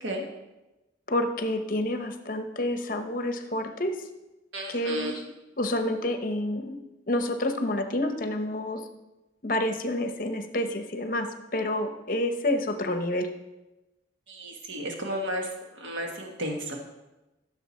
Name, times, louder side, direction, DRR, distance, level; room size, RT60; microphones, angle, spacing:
voice 1, 1.1-3.9 4.7-5.2 5.6-6.8 7.1-8.8 9.4-13.3, left 1 dB, 45° left, 7 dB, 0.9 m, -28 dB
voice 2, 4.5-5.2 14.3-16.8, equal, 85° right, 1 dB, 1.5 m, -33 dB
14.0 x 6.7 x 4.3 m, 1.0 s
head